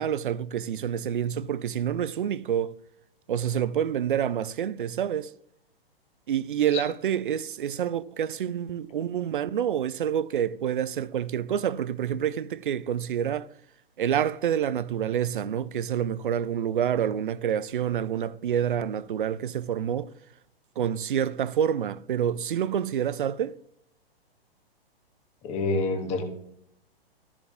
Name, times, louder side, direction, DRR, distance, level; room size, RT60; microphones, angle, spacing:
voice 1, 0.0-2.7 3.3-5.3 6.3-13.5 14.0-20.1 20.8-23.5, right 9 dB, 55° right, 0.5 m, -27 dB
voice 2, 25.4-26.2, left 3 dB, 20° left, 1.5 m, -27 dB
13.0 x 7.2 x 3.5 m
figure-of-eight pair, 115°, 31 cm